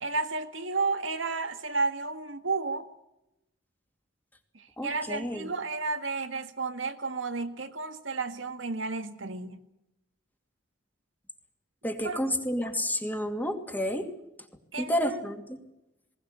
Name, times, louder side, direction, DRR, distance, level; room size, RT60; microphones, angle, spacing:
voice 1, 0.0-2.9 4.6-9.6 12.0-12.2 14.7-15.2, right 3 dB, 80° right, 1.8 m, -32 dB
voice 2, 4.8-5.5 11.8-14.1 14.8-15.6, equal, 10° left, 2.5 m, -30 dB
20.5 x 19.0 x 8.2 m
head